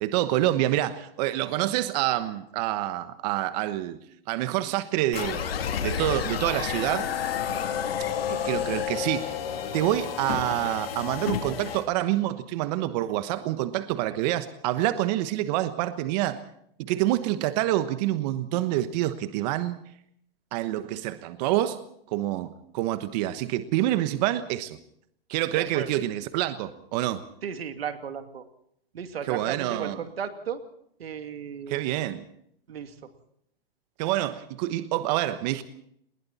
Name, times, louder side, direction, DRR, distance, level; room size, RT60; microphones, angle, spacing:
voice 1, 0.0-4.0 4.3-5.4 5.8-7.3 8.3-9.4 9.7-16.4 16.8-19.8 20.5-21.8 22.1-24.8 25.3-27.2 29.2-30.0 31.7-32.2 34.0-35.6, right 14 dB, 45° right, 11 dB, 1.2 m, -27 dB
sound 1, 5.1-11.8, left 8 dB, 80° left, 2.9 m, -30 dB
voice 2, 25.5-25.9 27.4-28.4 28.9-30.6 31.0-31.8 32.7-33.1, right 7 dB, 85° right, 7 dB, 2.6 m, -35 dB
29.5 x 21.0 x 4.2 m, 0.70 s
hypercardioid pair, 140°, 30 cm